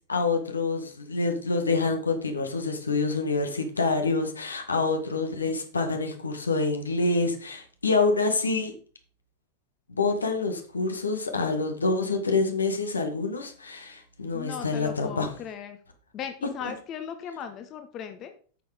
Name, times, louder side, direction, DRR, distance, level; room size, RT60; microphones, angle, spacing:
voice 1, 0.1-8.7 9.9-15.3 16.6-16.7, left 3 dB, 75° left, 5 dB, 1.8 m, -27 dB
voice 2, 14.3-15.8 16.1-18.3, left 8 dB, 35° left, 7 dB, 1.2 m, -37 dB
8.9 x 6.9 x 5.1 m, 0.41 s
figure-of-eight pair, 90°, 0 cm